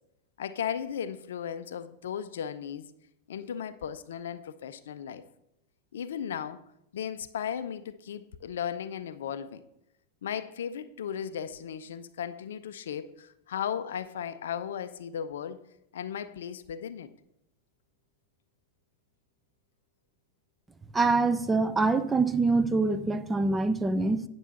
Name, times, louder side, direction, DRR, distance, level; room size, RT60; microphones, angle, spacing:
voice 1, 0.4-2.9 3.3-5.2 5.9-6.6 6.9-9.6 10.2-15.6 15.9-17.1, left 8 dB, 60° left, 13 dB, 0.4 m, -36 dB
voice 2, 20.9-24.3, right 3 dB, 10° right, 11 dB, 0.5 m, -25 dB
9.1 x 6.1 x 4.1 m, 0.82 s
figure-of-eight pair, 90°, 0 cm